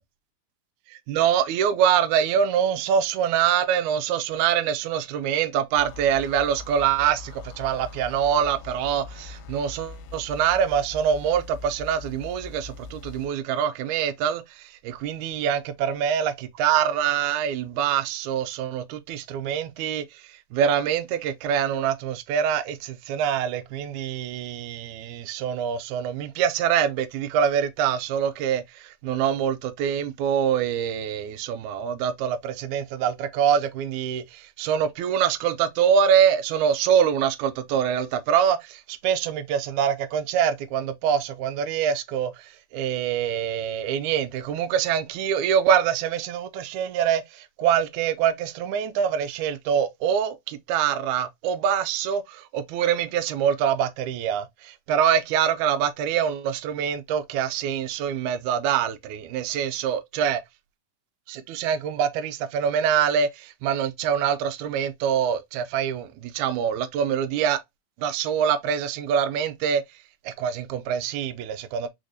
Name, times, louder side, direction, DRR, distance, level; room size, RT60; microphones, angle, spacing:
voice 1, 0.9-16.3 16.6-20.0 20.5-60.4 61.3-67.6 68.0-69.8 70.2-71.9, right 8 dB, 85° right, 1.7 m, -25 dB
sound 1, 5.8-13.3, left 3 dB, 80° left, 2.1 m, -42 dB
4.9 x 3.9 x 2.6 m
omnidirectional pair, 4.1 m